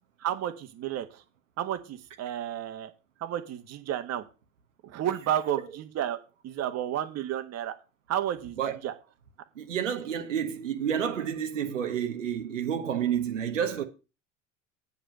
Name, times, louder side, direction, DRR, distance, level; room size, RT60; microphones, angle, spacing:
voice 1, 0.2-1.2 1.6-2.9 3.2-4.2 4.8-6.2 6.4-7.7 8.1-8.9, right 11 dB, 45° right, 1.5 m, -31 dB
voice 2, 9.6-13.8, right 8 dB, 85° right, 1.3 m, -29 dB
8.7 x 5.4 x 6.9 m
hypercardioid pair, 80°, 37 cm